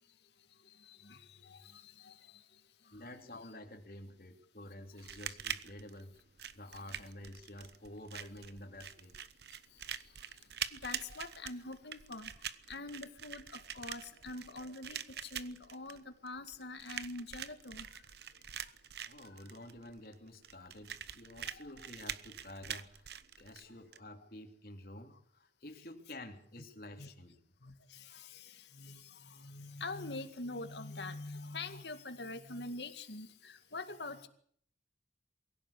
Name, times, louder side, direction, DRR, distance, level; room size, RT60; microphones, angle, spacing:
voice 1, 0.8-2.4 10.7-12.3 12.7-17.9 21.5-21.7 27.0-27.1 27.6-34.3, left 2 dB, 80° left, 8 dB, 2.1 m, -45 dB
voice 2, 2.9-6.2 6.5-9.1 19.0-23.0 23.4-27.3, left 1 dB, 55° left, 3 dB, 3.2 m, -50 dB
sound 1, 5.0-24.0, right 9 dB, 70° right, 0.9 m, -45 dB
23.0 x 16.5 x 8.5 m, 0.63 s
head